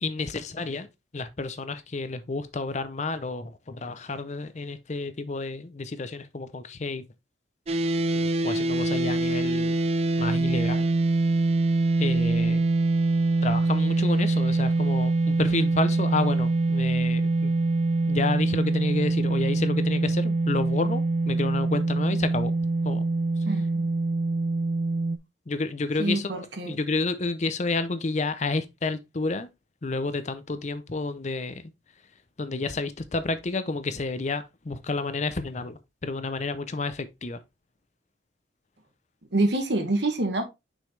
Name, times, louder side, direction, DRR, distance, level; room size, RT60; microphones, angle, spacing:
voice 1, 0.0-0.9 1.1-7.1 8.4-9.8 10.2-10.9 12.0-12.7 13.4-17.5 18.1-22.5 22.8-23.0 25.5-29.5 29.8-31.7 32.4-37.4, left 3 dB, 35° left, 0.6 m, -30 dB
sound 1, 7.7-25.2, right 2 dB, 30° right, 0.4 m, -24 dB
voice 2, 23.5-23.9 26.0-26.8 39.3-40.4, right 2 dB, 65° right, 1.5 m, -26 dB
6.2 x 5.2 x 3.2 m
head